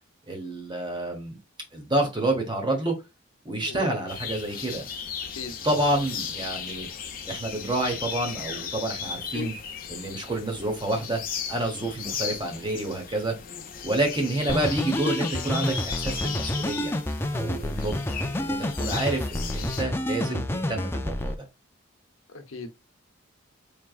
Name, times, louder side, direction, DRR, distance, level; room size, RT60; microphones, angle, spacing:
voice 1, 0.3-1.4 1.7-3.0 3.4-4.8 5.6-6.9 7.3-9.5 9.9-11.2 11.5-13.3 13.8-16.9 17.3-18.0 18.4-21.4, right 1 dB, 20° right, 1.1 m, -28 dB
sound 1, 4.1-19.8, left 7 dB, 45° left, 0.7 m, -36 dB
sound 2, 14.5-21.3, left 1 dB, 10° left, 0.3 m, -29 dB
voice 2, 22.3-22.7, left 4 dB, 80° left, 0.9 m, -35 dB
4.4 x 3.3 x 2.4 m
head